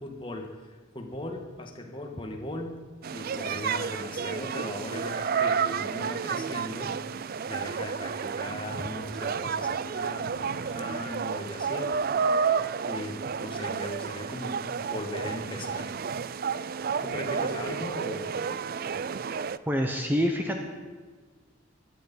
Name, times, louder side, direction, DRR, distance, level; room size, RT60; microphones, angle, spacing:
voice 1, 0.0-2.8 3.1-6.9 7.5-11.9 12.9-16.0 17.0-18.3, left 1 dB, 25° left, 2 dB, 1.7 m, -38 dB
sound 1, 3.0-19.6, right 6 dB, 45° right, 0.4 m, -31 dB
voice 2, 19.7-20.6, equal, 10° right, 3 dB, 1.0 m, -26 dB
17.0 x 12.0 x 5.5 m, 1.4 s
head